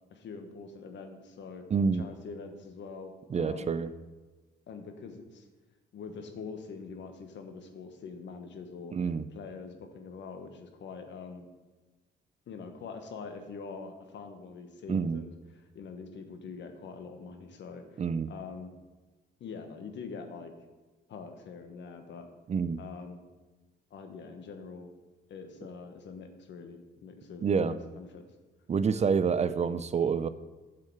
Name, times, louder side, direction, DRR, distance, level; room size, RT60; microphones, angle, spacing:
voice 1, 0.1-1.6 1.9-3.7 4.7-5.5 5.9-9.0 9.3-11.5 12.5-18.0 18.3-18.7 19.4-20.5 21.1-22.3 22.8-23.2 23.9-24.9 25.3-28.2, left 5 dB, 65° left, 6 dB, 1.2 m, -44 dB
voice 2, 1.7-2.0 3.3-3.9 8.9-9.2 14.9-15.2 18.0-18.3 22.5-22.8 27.4-27.8 28.7-30.3, right 6 dB, 35° right, 13 dB, 0.4 m, -27 dB
8.4 x 6.7 x 4.6 m, 1.2 s
cardioid pair, 90°, 20 cm